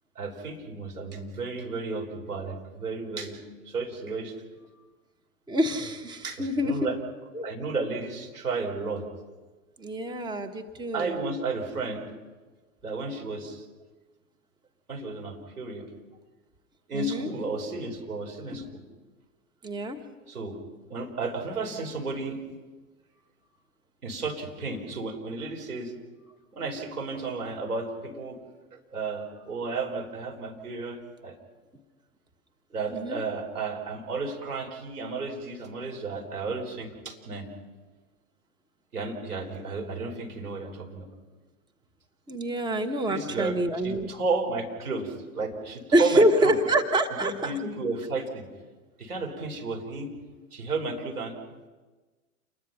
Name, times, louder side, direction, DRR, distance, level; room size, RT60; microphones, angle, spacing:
voice 1, 0.1-4.3 6.2-7.0 7.4-9.0 10.9-12.0 12.8-13.6 14.9-15.9 16.9-18.8 20.3-20.6 20.9-22.4 24.0-25.9 26.5-28.4 28.7-31.4 32.7-37.5 38.9-41.1 43.1-43.6 43.8-46.5 47.2-48.4 49.0-50.1 50.5-51.4, right 3 dB, 80° right, 2 dB, 5.1 m, -33 dB
voice 2, 5.5-6.9 7.3-7.5 9.8-11.2 16.9-17.3 18.6-18.7 19.6-20.0 32.9-33.2 42.3-44.1 45.9-47.5, right 1 dB, 10° right, 6 dB, 1.4 m, -26 dB
28.5 x 21.5 x 5.8 m, 1.3 s
figure-of-eight pair, 100°, 44 cm